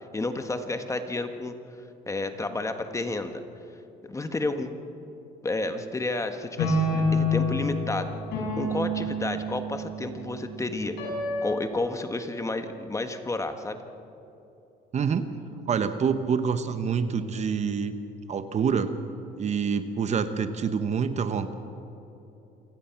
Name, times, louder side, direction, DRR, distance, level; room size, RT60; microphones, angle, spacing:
voice 1, 0.1-1.5 2.1-3.4 4.1-4.7 5.4-8.1 8.6-11.0 11.4-13.8, left 2 dB, 20° left, 7 dB, 1.4 m, -31 dB
sound 1, 6.6-11.7, left 1 dB, 85° left, 5.6 m, -28 dB
voice 2, 14.9-15.3 15.7-17.9 18.3-18.9 19.4-21.5, right 6 dB, 40° right, 10 dB, 1.1 m, -26 dB
28.0 x 17.0 x 5.9 m, 3.0 s
cardioid pair, 110°, 17 cm